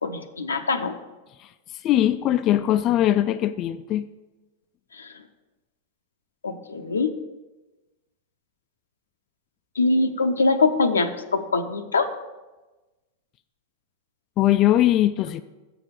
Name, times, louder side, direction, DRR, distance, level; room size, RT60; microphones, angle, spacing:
voice 1, 0.0-1.0 4.9-5.1 6.4-7.1 9.8-12.1, left 3 dB, 90° left, 8 dB, 0.6 m, -23 dB
voice 2, 1.4-4.1 14.4-15.4, left 13 dB, 40° left, 10 dB, 0.4 m, -21 dB
7.5 x 6.0 x 6.5 m, 1.1 s
hypercardioid pair, 100°, 0 cm